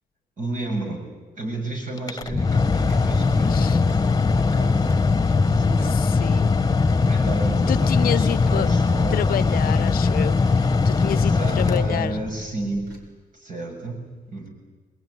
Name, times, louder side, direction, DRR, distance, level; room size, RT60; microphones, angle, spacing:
voice 1, 0.4-1.0 1.4-5.0 5.3-6.2 7.0-10.2 11.1-13.0 13.3-14.5, right 2 dB, 60° right, 1 dB, 7.4 m, -33 dB
Mechanical fan, 2.0-12.5, left 4 dB, 25° left, 1.1 m, -20 dB
sound 1, 2.1-13.1, right 1 dB, 80° right, 5.5 m, -46 dB
voice 2, 3.4-3.8 5.8-6.6 7.7-8.7 9.1-12.2, left 11 dB, 85° left, 14 dB, 0.7 m, -29 dB
26.5 x 21.5 x 9.9 m, 1.3 s
cardioid pair, 95°, 15 cm